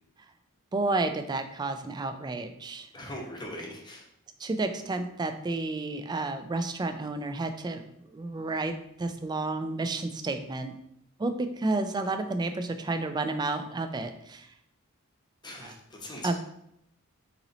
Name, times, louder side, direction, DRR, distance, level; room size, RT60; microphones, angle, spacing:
voice 1, 0.7-2.9 4.4-10.7 11.2-14.5 15.6-15.7 16.2-16.4, right 2 dB, 20° right, 8 dB, 0.3 m, -31 dB
voice 2, 2.9-4.1 15.4-16.4, left 1 dB, 20° left, 0 dB, 0.8 m, -40 dB
3.9 x 3.0 x 4.0 m, 0.77 s
head